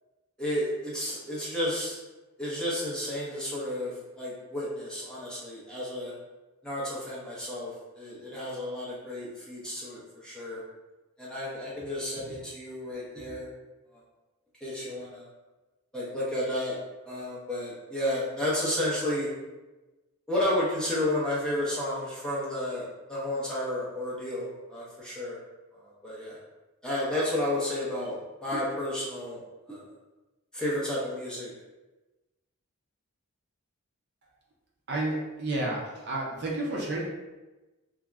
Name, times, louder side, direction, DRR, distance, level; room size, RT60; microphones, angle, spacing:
voice 1, 0.4-2.0 2.4-6.1 6.6-10.6 11.2-13.5 14.6-15.3 15.9-16.8 17.1-19.3 20.3-25.4 25.8-26.4 26.8-29.4 29.7-29.8 30.5-31.5, left 1 dB, 5° left, -7 dB, 0.6 m, -32 dB
voice 2, 34.9-37.1, right 2 dB, 50° right, -2 dB, 0.5 m, -31 dB
2.4 x 2.0 x 3.3 m, 1.1 s
head